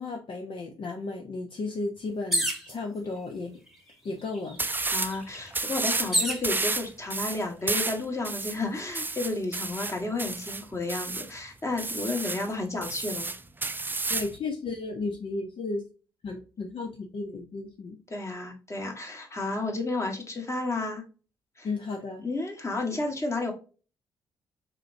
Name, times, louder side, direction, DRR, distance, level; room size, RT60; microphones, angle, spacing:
voice 1, 0.0-3.6 4.0-4.6 14.1-15.8 16.2-18.0 21.6-22.2, left 3 dB, 50° left, 3 dB, 0.7 m, -34 dB
sound 1, 2.3-2.7 3.7-3.8 4.1-6.5 7.2-7.7, right 1 dB, ahead, 1.2 m, -29 dB
sound 2, 4.6-5.2 5.5-6.1 6.4-11.3 11.8-12.5 12.8-14.3, right 3 dB, 20° right, 0.5 m, -31 dB
voice 2, 4.9-13.3 18.1-21.0 21.6-21.7 22.2-23.5, left 2 dB, 25° left, 2 dB, 1.5 m, -32 dB
3.7 x 3.4 x 2.6 m, 0.36 s
hypercardioid pair, 45°, 11 cm